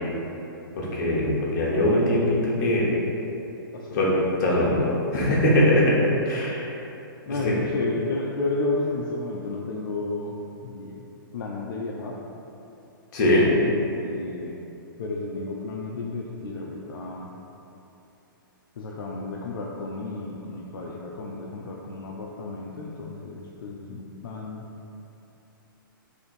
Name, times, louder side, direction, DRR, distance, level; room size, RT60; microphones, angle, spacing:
voice 1, 0.8-2.9 3.9-4.1 4.4-4.8 5.1-5.9 6.3-6.7 7.4-7.5 13.1-13.5, left 1 dB, 50° left, -5 dB, 1.1 m, -21 dB
voice 2, 3.7-4.0 7.3-10.3 10.6-11.0 11.3-12.2 14.0-14.6 15.0-17.3 18.8-24.6, left 2 dB, 75° left, -3 dB, 0.4 m, -32 dB
3.5 x 2.6 x 4.2 m, 2.9 s
hypercardioid pair, 130°, 12 cm